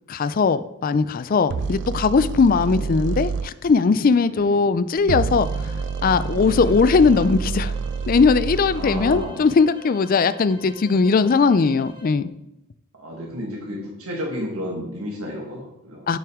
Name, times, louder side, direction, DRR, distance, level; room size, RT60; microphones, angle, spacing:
voice 1, 0.1-5.7 6.0-7.7 8.1-12.3 16.1-16.2, left 4 dB, 40° left, 14 dB, 0.4 m, -19 dB
sound 1, 1.5-3.5 5.0-9.3, right 5 dB, 55° right, 0.3 m, -28 dB
voice 2, 1.5-1.9 4.2-4.6 6.3-6.8 8.7-9.4 13.0-16.0, equal, 75° right, -2 dB, 1.7 m, -32 dB
sound 2, 5.4-12.2, equal, 20° right, 1.1 m, -46 dB
10.5 x 5.9 x 3.7 m, 0.86 s
head